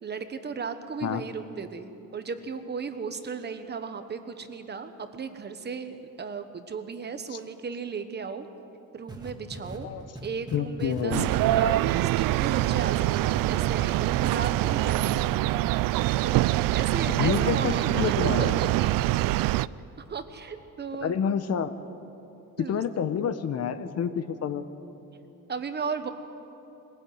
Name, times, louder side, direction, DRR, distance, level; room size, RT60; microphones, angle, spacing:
voice 1, 0.0-8.5 8.9-9.9 10.2-15.3 16.2-18.7 20.1-21.1 22.6-22.8 25.5-26.1, right 5 dB, 30° right, 9 dB, 1.1 m, -35 dB
sound 1, 9.1-14.0 14.3-15.4 15.6-15.7, right 2 dB, 10° right, 2.0 m, -40 dB
voice 2, 10.5-11.3 17.1-18.5 21.0-21.8 22.6-24.6, left 7 dB, 45° left, 11 dB, 0.9 m, -28 dB
sound 2, 11.1-19.7, right 16 dB, 70° right, 0.5 m, -24 dB
22.0 x 16.0 x 9.4 m, 2.9 s
cardioid pair, 150°, 35 cm